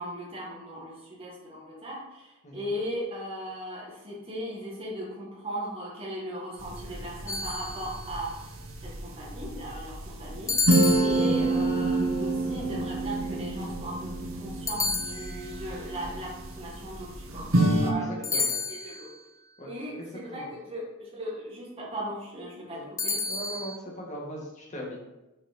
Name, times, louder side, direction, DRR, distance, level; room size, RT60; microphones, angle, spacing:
voice 1, 0.0-8.3 8.8-19.1 19.6-23.2, equal, 25° right, -5 dB, 1.7 m, -38 dB
sound 1, 6.6-17.9, right 2 dB, 65° right, 1.0 m, -28 dB
sound 2, 7.3-8.2 10.5-11.7 14.7-15.7 18.2-19.2 23.0-23.8, left 4 dB, 15° left, 0.3 m, -31 dB
voice 2, 17.9-18.6 19.6-19.7 20.0-20.5 22.7-22.8 23.3-25.1, equal, 35° left, -2 dB, 1.7 m, -40 dB
6.7 x 4.7 x 4.3 m, 1.0 s
head